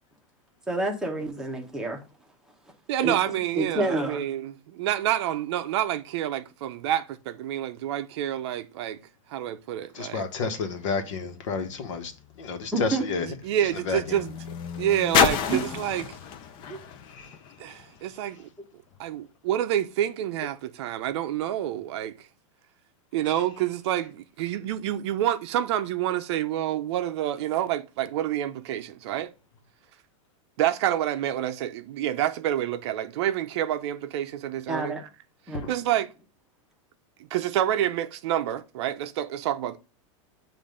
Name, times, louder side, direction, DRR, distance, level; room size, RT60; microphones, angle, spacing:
voice 1, 0.7-2.0 3.0-3.2 3.6-4.2 12.7-13.0 15.5-15.6 16.7-16.8 34.7-35.0 35.5-35.7, right 2 dB, 5° right, 1.0 m, -28 dB
voice 2, 2.9-9.0 9.3-10.3 13.2-14.3 14.8-16.2 17.6-18.5 19.0-22.3 23.1-29.3 30.6-35.0 35.5-36.1 37.3-39.8, right 11 dB, 55° right, 0.6 m, -28 dB
voice 3, 9.9-12.1 12.4-13.3 13.7-14.2 17.1-17.8 35.5-35.7, left 4 dB, 65° left, 1.2 m, -31 dB
sound 1, 11.7-18.1 18.9-19.0, left 8 dB, 30° left, 0.5 m, -30 dB
7.3 x 2.6 x 4.9 m
supercardioid pair, 160°, 17 cm